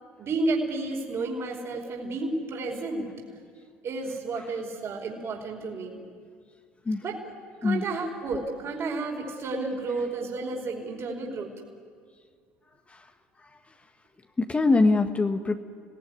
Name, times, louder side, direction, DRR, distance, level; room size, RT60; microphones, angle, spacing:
voice 1, 0.2-3.1 3.8-6.0 7.0-7.3 7.6-11.5, right 3 dB, 40° right, 0 dB, 4.9 m, -31 dB
voice 2, 14.4-15.6, left 3 dB, 20° left, 6 dB, 1.5 m, -22 dB
30.0 x 19.0 x 9.9 m, 2.1 s
figure-of-eight pair, 65°, 7 cm